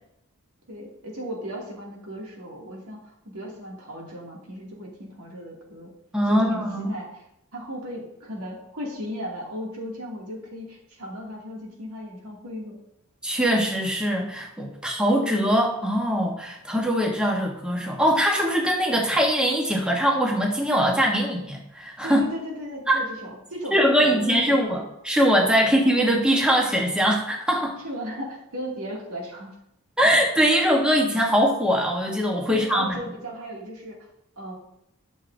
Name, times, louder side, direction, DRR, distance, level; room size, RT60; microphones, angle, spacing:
voice 1, 0.7-5.9 6.3-7.2 7.5-12.8 22.0-24.8 25.6-25.7 27.8-29.5 32.5-34.0 34.4-34.5, equal, 85° right, -2 dB, 2.3 m, -36 dB
voice 2, 6.1-6.9 13.2-22.2 22.9-23.0 23.7-27.8 30.0-32.8, equal, 5° right, -1 dB, 1.0 m, -22 dB
12.5 x 6.4 x 2.6 m, 0.82 s
head